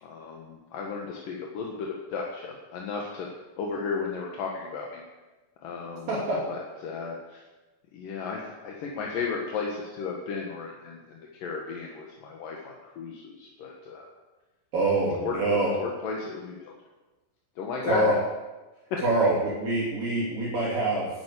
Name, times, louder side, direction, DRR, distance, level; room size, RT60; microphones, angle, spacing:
voice 1, 0.0-3.3 3.6-5.0 5.6-6.2 6.5-7.4 7.9-14.1 15.1-15.4 15.8-16.8 17.6-18.0 18.9-19.0, left 5 dB, 60° left, -1 dB, 2.6 m, -34 dB
voice 2, 6.1-6.5 14.7-15.7 17.8-18.1 19.0-21.1, right 2 dB, 50° right, -7 dB, 4.1 m, -25 dB
11.5 x 10.5 x 8.5 m, 1.1 s
omnidirectional pair, 5.4 m